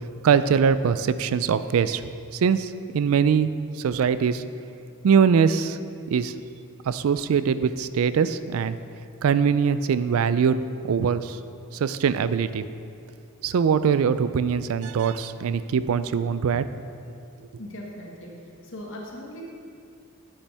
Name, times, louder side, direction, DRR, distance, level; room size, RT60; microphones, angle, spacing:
voice 1, 0.2-2.0 2.3-3.5 3.8-4.4 5.0-5.8 6.1-6.3 6.9-8.8 9.2-10.6 10.8-11.4 11.7-12.6 13.4-16.7, right 6 dB, 75° right, 13 dB, 0.4 m, -22 dB
voice 2, 17.6-18.3 18.6-19.4, left 1 dB, 65° left, -2 dB, 1.6 m, -39 dB
9.7 x 8.7 x 3.4 m, 2.4 s
head